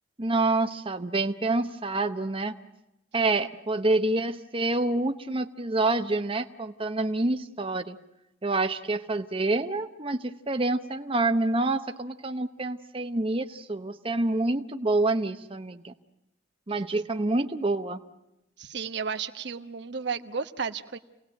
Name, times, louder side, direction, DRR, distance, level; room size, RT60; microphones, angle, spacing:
voice 1, 0.2-2.5 3.1-8.0 8.4-15.9 16.7-18.0, right 2 dB, 30° right, 7 dB, 0.9 m, -27 dB
voice 2, 18.6-21.0, right 5 dB, 65° right, 9 dB, 1.1 m, -33 dB
28.0 x 19.0 x 9.2 m, 0.89 s
head